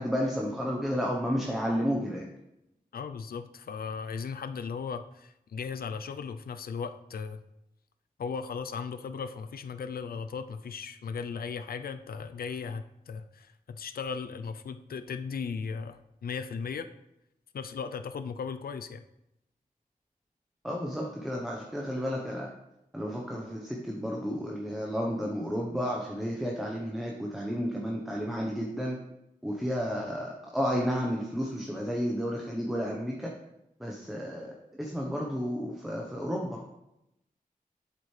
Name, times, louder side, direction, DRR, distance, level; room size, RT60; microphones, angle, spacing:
voice 1, 0.0-2.3 20.6-22.5 22.9-29.0 29.4-33.3 33.8-36.6, equal, ahead, -1 dB, 0.9 m, -32 dB
voice 2, 2.9-7.4 8.2-16.9 17.5-19.0, left 5 dB, 90° left, 10 dB, 0.4 m, -37 dB
7.8 x 7.6 x 3.2 m, 0.87 s
wide cardioid pair, 115°, 15 cm